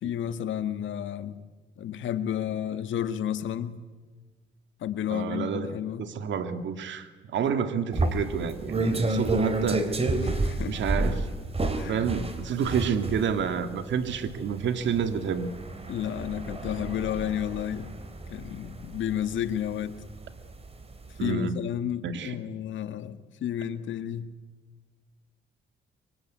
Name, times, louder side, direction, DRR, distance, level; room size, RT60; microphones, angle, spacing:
voice 1, 0.0-1.4 1.8-3.8 4.8-6.0 7.4-7.5 10.2-10.8 11.8-12.1 15.9-17.9 18.3-20.0 21.2-24.3, left 10 dB, 75° left, 10 dB, 1.8 m, -31 dB
voice 2, 5.1-5.7 6.0-10.1 10.7-11.3 11.9-15.5 21.2-21.6 22.0-22.4, right 7 dB, 70° right, 9 dB, 2.0 m, -29 dB
sound 1, 7.9-20.6 21.0-21.2, right 2 dB, 30° right, 3.7 m, -30 dB
25.0 x 24.5 x 9.6 m, 1.3 s
cardioid pair, 90°, 20 cm